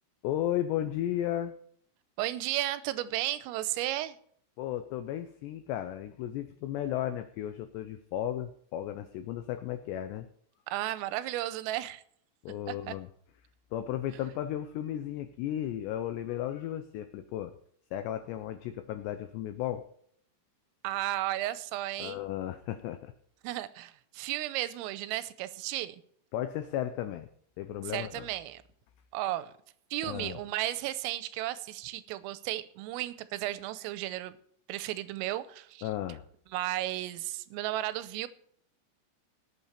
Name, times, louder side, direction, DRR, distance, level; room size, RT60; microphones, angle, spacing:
voice 1, 0.2-1.5 4.6-10.3 12.4-13.1 13.7-17.5 17.9-19.9 22.0-23.1 26.3-27.3 27.6-28.3 30.0-30.4 35.8-36.2, left 12 dB, 90° left, 2.4 m, -34 dB
voice 2, 2.2-4.2 10.7-12.0 12.7-13.0 20.8-22.2 23.4-26.0 27.9-28.6 29.1-29.5 29.9-34.4 34.7-35.9 36.5-38.3, right 15 dB, 90° right, 3.3 m, -34 dB
18.5 x 8.6 x 4.3 m
omnidirectional pair, 5.9 m